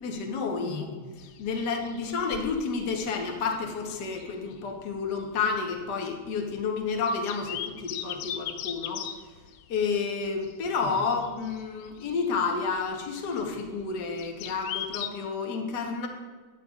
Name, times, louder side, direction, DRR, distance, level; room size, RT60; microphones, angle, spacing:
voice 1, 0.0-1.0 1.4-9.0 9.7-16.1, left 5 dB, 55° left, 2 dB, 1.5 m, -30 dB
sound 1, 1.2-15.1, left 10 dB, 80° left, 1.4 m, -41 dB
12.5 x 9.9 x 2.4 m, 1.4 s
omnidirectional pair, 2.4 m